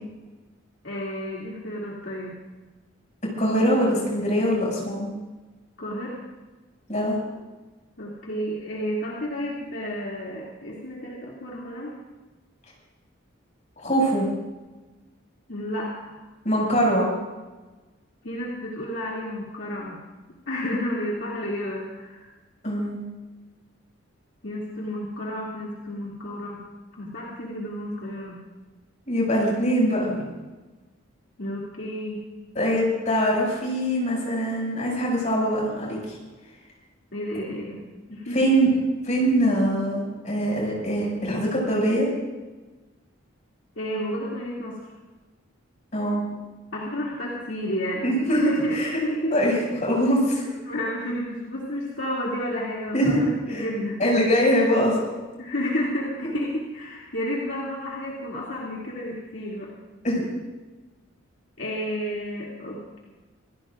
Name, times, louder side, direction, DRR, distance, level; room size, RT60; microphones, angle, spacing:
voice 1, 0.8-2.3 5.8-6.2 8.0-11.9 15.5-16.2 18.2-20.0 20.5-22.3 24.4-26.6 26.9-28.4 31.4-32.2 37.1-37.8 38.1-38.5 43.8-44.8 46.7-49.4 50.6-54.1 55.4-59.7 61.6-63.0, equal, 65° left, -5 dB, 2.7 m, -31 dB
voice 2, 3.4-5.1 6.9-7.2 13.8-14.2 16.4-17.2 22.6-23.0 29.1-30.2 32.5-36.2 38.3-38.7 39.0-42.1 45.9-46.2 48.0-48.9 49.3-50.5 52.9-53.2 53.5-53.7 54.0-55.0 56.2-56.3 60.0-60.3, equal, 35° left, -3 dB, 6.6 m, -23 dB
26.5 x 16.0 x 2.6 m, 1.2 s
head